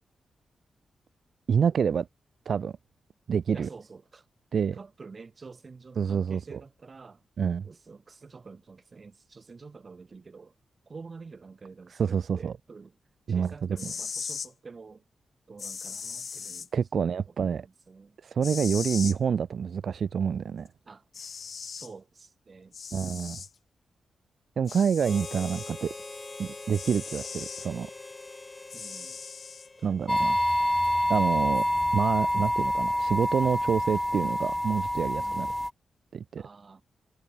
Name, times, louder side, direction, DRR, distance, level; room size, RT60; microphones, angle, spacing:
voice 1, 1.5-2.1 2.5-2.8 3.3-3.7 4.5-4.8 6.0-6.6 7.4-7.7 12.0-12.5 13.3-13.7 16.7-17.6 18.2-20.7 22.9-23.4 24.6-25.9 26.4-27.9 29.8-30.4 31.1-31.7 31.9-35.5 36.1-36.4, right 7 dB, 65° right, 0.3 m, -27 dB
voice 2, 3.5-4.3 4.7-7.2 7.6-10.5 10.9-12.9 13.3-15.0 15.5-18.2 20.8-21.0 21.5-22.7 28.7-29.2 29.8-30.2 35.2-35.5 36.4-36.8, right 4 dB, 40° right, 6.8 m, -48 dB
sound 1, 13.6-14.5 15.6-16.7 18.4-19.2 20.7-20.8 21.1-21.9 22.7-23.5 24.7-25.7 26.7-27.7 28.7-29.7, left 6 dB, 55° left, 0.6 m, -38 dB
Harmonica, 25.0-30.5, left 3 dB, 25° left, 6.8 m, -43 dB
sound 2, 30.1-35.7, equal, ahead, 0.6 m, -27 dB
wide cardioid pair, 105°, 0 cm